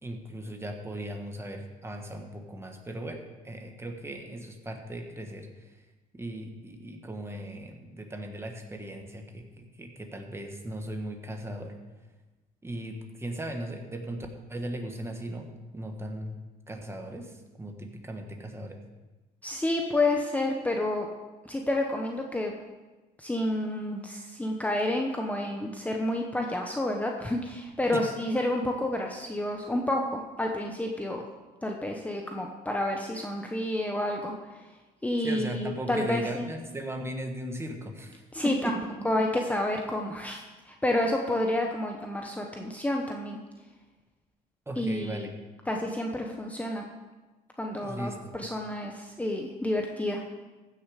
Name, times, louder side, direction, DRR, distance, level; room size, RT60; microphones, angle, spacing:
voice 1, 0.0-5.5 6.1-11.7 12.6-15.5 15.7-16.4 16.7-18.8 27.9-28.0 35.2-38.9 44.7-45.3 47.8-48.3, right 1 dB, 15° right, 4 dB, 1.5 m, -37 dB
voice 2, 19.4-21.1 21.4-22.5 23.2-31.2 31.6-34.3 35.0-36.4 38.3-38.8 39.0-43.4 44.8-45.3 45.7-46.8 47.6-50.4, left 1 dB, 10° left, 1 dB, 1.0 m, -29 dB
15.0 x 6.6 x 5.0 m, 1.2 s
cardioid pair, 110°, 17 cm